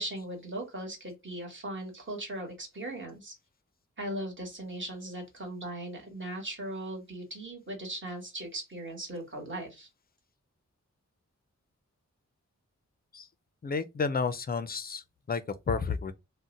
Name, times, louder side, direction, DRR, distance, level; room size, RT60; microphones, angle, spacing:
voice 1, 0.0-3.3 4.0-9.9, right 1 dB, 40° right, 1.3 m, -38 dB
voice 2, 13.6-16.1, left 5 dB, 30° left, 0.4 m, -31 dB
2.6 x 2.1 x 3.7 m
wide cardioid pair, 75°, 30 cm